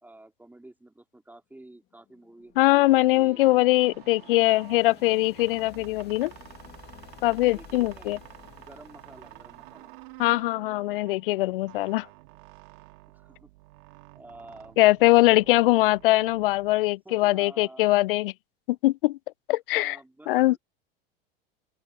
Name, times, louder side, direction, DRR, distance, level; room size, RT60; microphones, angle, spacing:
voice 1, 0.0-3.7 7.3-8.2 8.6-9.9 13.1-13.5 14.1-16.0 17.0-18.0 19.7-20.6, right 1 dB, 5° right, 3.3 m, -50 dB
sound 1, 1.8-10.7, left 11 dB, 35° left, 2.2 m, -52 dB
sound 2, 2.5-17.1, right 23 dB, 60° right, 2.2 m, -50 dB
voice 2, 2.6-6.3 7.2-8.2 10.2-12.1 14.8-18.3 18.7-19.2 19.5-20.0 20.3-20.6, left 18 dB, 60° left, 0.4 m, -22 dB
open air
figure-of-eight pair, 80°, 30 cm